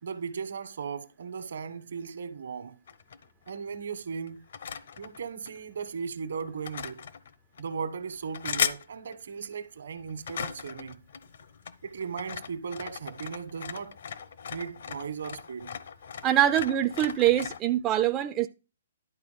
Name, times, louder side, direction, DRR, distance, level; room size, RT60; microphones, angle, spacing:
voice 1, 0.0-2.8 3.5-4.4 5.0-7.0 7.6-11.0 11.8-14.0 14.5-15.7, right 6 dB, 70° right, 1.3 m, -37 dB
sound 1, 2.9-3.7 4.3-5.9 6.4-7.7 8.1-8.9 9.1-9.5 10.0-17.6, left 7 dB, 60° left, 0.7 m, -37 dB
voice 2, 16.2-18.5, right 12 dB, 15° right, 0.3 m, -24 dB
11.0 x 4.1 x 5.1 m
hypercardioid pair, 165°, 0 cm